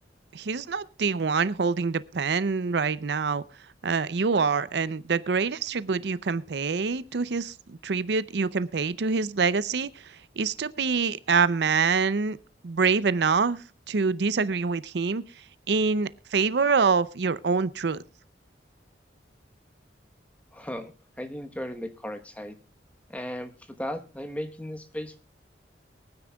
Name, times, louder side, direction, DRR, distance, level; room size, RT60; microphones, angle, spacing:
voice 1, 0.3-3.4 3.8-12.4 12.6-15.2 15.7-18.0, right 5 dB, 70° right, 17 dB, 0.5 m, -25 dB
voice 2, 20.5-20.9 21.2-22.6 23.1-25.2, equal, 10° left, 7 dB, 1.1 m, -36 dB
23.5 x 9.7 x 2.3 m, 0.31 s
head